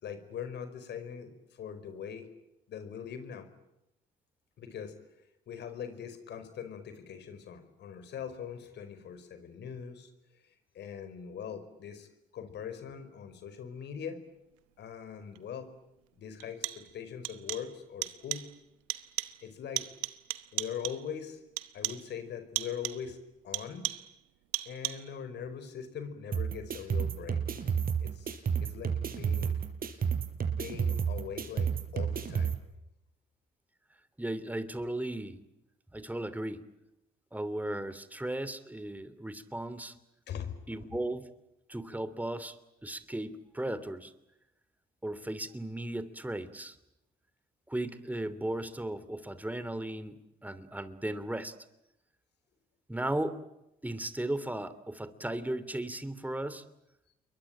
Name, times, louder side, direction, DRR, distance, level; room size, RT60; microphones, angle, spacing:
voice 1, 0.0-2.3 2.7-3.5 4.6-5.0 5.5-10.1 10.7-12.1 12.3-14.2 14.8-15.7 16.2-18.5 19.4-19.8 20.5-21.4 21.7-23.2 23.4-23.9 24.6-27.4 28.0-29.6 30.5-32.5 40.3-40.8, left 8 dB, 65° left, 10 dB, 4.9 m, -41 dB
sound 1, 15.4-15.5 16.4-17.0 17.2-17.8 18.0-18.6 18.9-19.5 19.8-21.1 21.6-22.1 22.6-23.1 23.5-24.2 24.5-25.2, right 20 dB, 85° right, 1.2 m, -37 dB
sound 2, 26.3-32.5, right 7 dB, 50° right, 4.9 m, -31 dB
voice 2, 34.2-35.4 35.9-36.6 37.3-39.9 40.7-41.2 41.7-42.6 42.8-44.1 45.0-46.8 47.7-51.5 52.9-53.4 53.8-56.6, right 1 dB, 10° right, 13 dB, 2.9 m, -36 dB
28.5 x 23.0 x 9.0 m, 0.89 s
hypercardioid pair, 55°, 19 cm